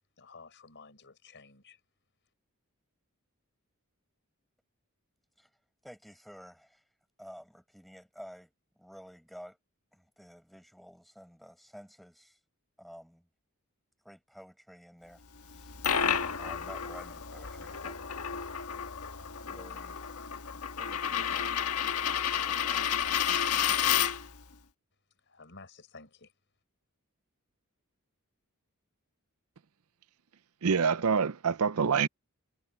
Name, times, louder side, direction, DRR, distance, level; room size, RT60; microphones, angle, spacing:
voice 1, 0.2-1.8 25.2-26.3, left 4 dB, 55° left, 5.6 m, -53 dB
voice 2, 5.8-6.8 7.2-9.6 9.9-12.4 12.8-13.3 14.0-15.2 15.5-15.7 16.4-18.3 18.8-20.4 20.8-21.5 22.3-22.9, equal, ahead, 5.8 m, -52 dB
Coin (dropping), 15.5-24.4, left 8 dB, 85° left, 1.5 m, -31 dB
voice 3, 30.6-32.1, right 6 dB, 70° right, 0.6 m, -26 dB
head